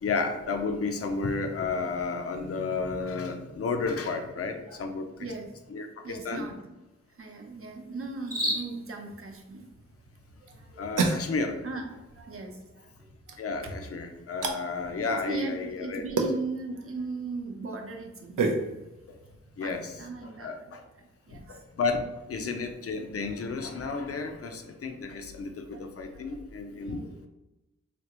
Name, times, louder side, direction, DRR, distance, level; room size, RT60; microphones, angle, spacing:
voice 1, 0.0-5.3 5.7-6.5 10.8-11.6 13.4-16.0 19.6-19.9 20.2-20.8 21.5-27.0, left 4 dB, 50° left, 5 dB, 0.5 m, -32 dB
sound 1, 1.0-18.0, equal, 30° right, 1.1 m, -44 dB
voice 2, 5.2-5.5 6.0-6.6 7.2-9.6 10.4-10.8 11.6-12.9 13.3-13.4 13.6-13.8 15.0-18.4 19.6-21.6 25.7-26.4 26.8-27.3, right 3 dB, 45° right, 2 dB, 0.7 m, -38 dB
sound 2, 9.5-21.5, right 3 dB, 85° right, 0.5 m, -35 dB
3.4 x 2.4 x 2.9 m, 1.0 s
cardioid pair, 55°, 30 cm